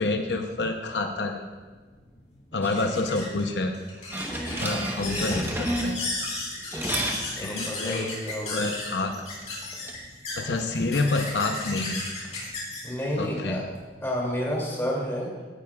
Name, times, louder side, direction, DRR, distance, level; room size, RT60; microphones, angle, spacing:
voice 1, 0.0-1.5 2.5-3.7 4.6-6.0 7.2-8.1 8.5-9.2 10.3-12.0 13.2-13.6, left 2 dB, 85° left, 5 dB, 0.7 m, -28 dB
sound 1, 1.5-14.4, left 2 dB, 40° left, 3.5 m, -36 dB
sound 2, 4.1-6.3 6.7-7.2 9.4-10.0, right 1 dB, 15° right, 1.0 m, -30 dB
voice 2, 7.4-8.6 12.4-12.5 12.8-13.6 14.0-15.3, equal, 15° left, -4 dB, 2.6 m, -31 dB
16.5 x 9.6 x 2.3 m, 1.4 s
head